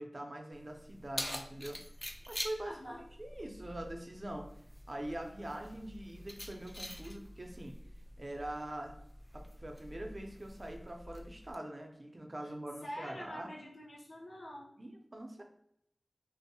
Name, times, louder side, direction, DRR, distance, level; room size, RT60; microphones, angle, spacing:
voice 1, 0.0-1.8 2.3-4.5 4.9-7.8 8.2-8.9 9.3-13.5 14.8-15.4, right 1 dB, 45° right, 2 dB, 0.5 m, -43 dB
Keys jangling, 0.5-11.5, equal, 20° left, 0.3 m, -46 dB
voice 2, 2.6-3.0 12.8-14.7, equal, 75° left, -2 dB, 0.6 m, -46 dB
2.6 x 2.0 x 2.7 m, 0.72 s
wide cardioid pair, 45°, 0 cm